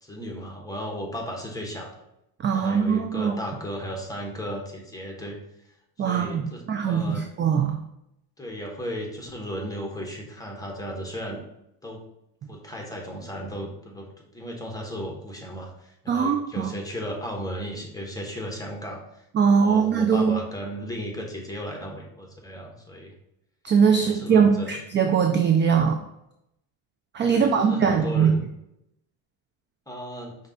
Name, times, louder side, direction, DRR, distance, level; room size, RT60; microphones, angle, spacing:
voice 1, 0.0-1.9 2.5-5.4 6.0-7.2 8.4-11.4 11.8-12.0 12.5-14.1 14.3-19.2 19.6-23.1 23.9-24.7 27.3-28.4 29.9-30.4, equal, 10° left, 0 dB, 1.2 m, -35 dB
voice 2, 2.4-3.4 6.0-7.8 16.1-16.7 19.3-20.3 23.6-26.0 27.1-28.3, right 6 dB, 25° right, 4 dB, 0.4 m, -21 dB
5.1 x 2.5 x 4.0 m, 0.81 s
supercardioid pair, 100°, 45 cm